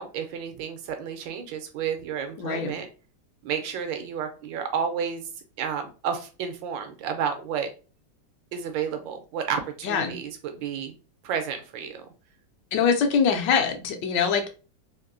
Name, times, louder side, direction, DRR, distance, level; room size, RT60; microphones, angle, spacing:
voice 1, 0.0-2.9 3.4-5.2 5.6-7.7 8.5-11.0 11.2-12.1, right 7 dB, 85° right, 6 dB, 1.4 m, -31 dB
voice 2, 2.4-2.7 9.8-10.1 12.7-14.5, left 6 dB, 75° left, 5 dB, 1.3 m, -23 dB
3.6 x 2.6 x 2.5 m, 0.34 s
omnidirectional pair, 2.0 m